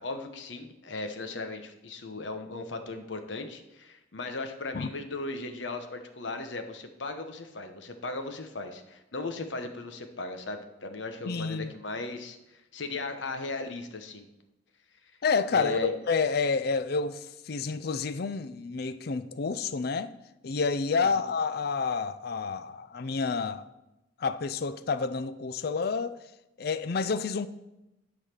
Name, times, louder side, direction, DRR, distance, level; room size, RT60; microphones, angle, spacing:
voice 1, 0.0-14.3 15.5-15.9, left 2 dB, 80° left, 1.0 m, -37 dB
voice 2, 11.2-11.7 15.2-20.1 20.4-23.6 24.2-26.2 26.6-27.5, left 4 dB, 55° left, 0.5 m, -29 dB
11.0 x 4.1 x 6.7 m
head